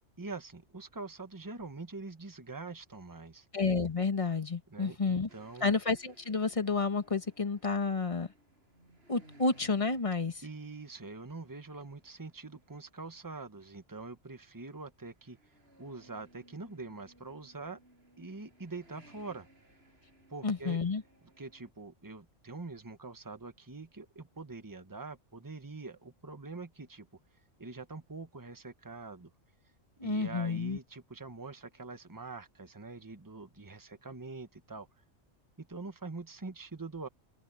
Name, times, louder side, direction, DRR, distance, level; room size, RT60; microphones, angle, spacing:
voice 1, 0.0-3.5 4.7-5.8 10.4-15.4 15.8-17.8 18.2-19.5 20.3-20.8 21.4-27.1 27.6-29.3 30.0-34.9 35.6-37.1, right 3 dB, 15° right, 1.3 m, -44 dB
voice 2, 3.5-5.3 5.6-8.3 9.1-10.4 20.4-21.0 30.0-30.8, left 4 dB, 30° left, 1.2 m, -30 dB
sound 1, 5.3-13.6 14.2-14.6 14.9-21.7, right 1 dB, 55° right, 6.8 m, -62 dB
open air
omnidirectional pair, 1.3 m